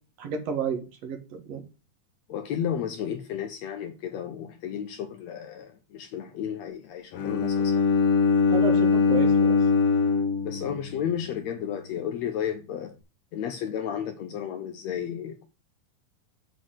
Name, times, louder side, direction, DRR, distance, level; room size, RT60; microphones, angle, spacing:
voice 1, 0.2-1.6 8.5-9.6, right 6 dB, 55° right, 2.4 m, -32 dB
voice 2, 2.3-7.9 10.4-12.9 13.3-15.5, left 9 dB, 90° left, 1.5 m, -33 dB
Bowed string instrument, 7.1-11.2, left 5 dB, 75° left, 1.5 m, -22 dB
8.2 x 4.2 x 6.3 m
omnidirectional pair, 4.1 m